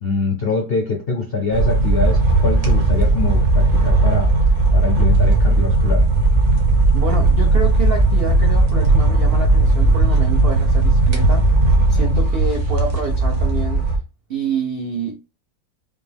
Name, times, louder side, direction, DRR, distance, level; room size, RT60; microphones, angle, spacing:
voice 1, 0.0-4.3 4.7-6.0, left 4 dB, 75° left, 0.5 m, -23 dB
sound 1, 1.5-14.0, right 2 dB, 45° right, 1.1 m, -16 dB
voice 2, 6.9-13.8 14.3-15.2, right 4 dB, 75° right, 0.5 m, -28 dB
5.4 x 2.1 x 3.4 m
omnidirectional pair, 2.1 m